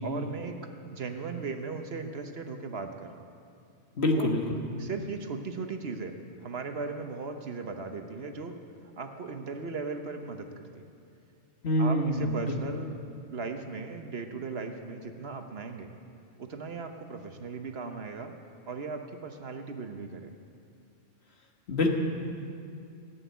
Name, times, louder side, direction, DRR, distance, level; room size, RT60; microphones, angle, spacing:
voice 1, 0.0-0.6 0.9-3.1 4.1-4.3 4.8-6.1 6.4-8.6 9.0-10.9 11.8-12.9 13.3-15.9 16.4-18.3 18.7-20.3, right 4 dB, 55° right, 5 dB, 1.2 m, -37 dB
voice 2, 4.0-4.4 11.6-12.6 21.7-21.9, left 1 dB, 60° left, 2 dB, 1.7 m, -25 dB
15.5 x 8.5 x 9.3 m, 2.5 s
omnidirectional pair, 1.3 m